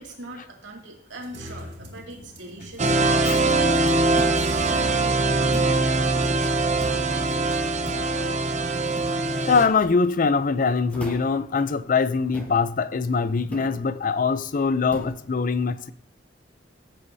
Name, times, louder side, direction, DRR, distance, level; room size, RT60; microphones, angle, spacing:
voice 1, 0.0-8.4, right 1 dB, 90° right, 2.5 m, -42 dB
sound 1, 1.1-5.2, left 1 dB, 65° right, 2.0 m, -41 dB
sound 2, 2.8-9.6, right 3 dB, 40° right, 0.9 m, -22 dB
voice 2, 3.1-3.4 9.3-15.9, left 4 dB, 45° left, 0.5 m, -23 dB
sound 3, 4.2-4.5 5.5-5.8 6.8-7.1 7.8-8.1 9.0-9.2 9.8-10.0 10.9-11.4 12.3-12.6 13.5-13.7 14.9-15.2, equal, 10° left, 1.8 m, -38 dB
16.0 x 8.3 x 2.7 m
head